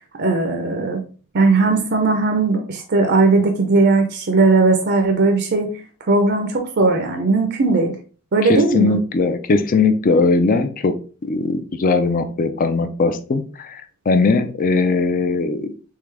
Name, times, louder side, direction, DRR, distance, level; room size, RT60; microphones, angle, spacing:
voice 1, 0.2-1.0 1.3-5.7 6.1-8.0 8.3-8.9, right 3 dB, 50° right, 3 dB, 0.6 m, -17 dB
voice 2, 8.4-10.9 11.2-15.7, left 3 dB, 40° left, 9 dB, 0.4 m, -19 dB
3.7 x 3.5 x 3.2 m, 0.39 s
head